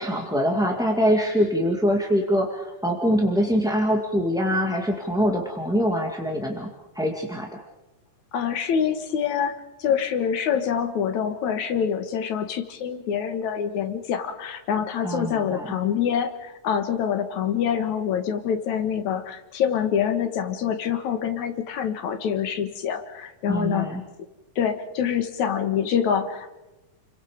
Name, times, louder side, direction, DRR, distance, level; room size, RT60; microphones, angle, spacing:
voice 1, 0.0-6.7 6.9-7.5 15.0-15.7 23.5-24.0, equal, ahead, 0 dB, 1.4 m, -24 dB
voice 2, 8.3-23.9 24.6-26.5, left 8 dB, 70° left, 7 dB, 2.8 m, -26 dB
30.0 x 23.5 x 5.1 m, 1.0 s
omnidirectional pair, 3.4 m